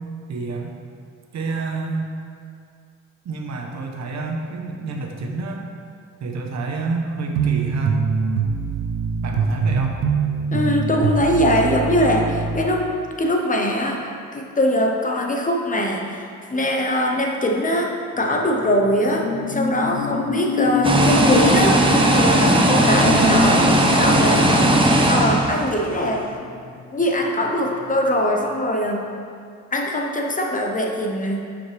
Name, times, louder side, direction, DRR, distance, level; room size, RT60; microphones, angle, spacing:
voice 1, 0.3-0.8 1.3-2.1 3.2-5.6 6.2-8.1 9.2-10.0, right 3 dB, 65° right, 2 dB, 1.1 m, -28 dB
sound 1, 7.4-12.7, right 5 dB, 85° right, 0.7 m, -23 dB
voice 2, 10.5-12.9 13.2-14.0 14.3-24.7 25.1-26.3 26.9-29.0 29.7-31.4, left 1 dB, 25° left, 1 dB, 1.0 m, -22 dB
sound 2, 18.2-27.2 27.6-27.8, left 5 dB, 80° left, 0.8 m, -27 dB
Toilet drier, 20.8-26.0, right 1 dB, 15° right, 0.9 m, -17 dB
11.0 x 5.1 x 3.4 m, 2.3 s
cardioid pair, 90°, 30 cm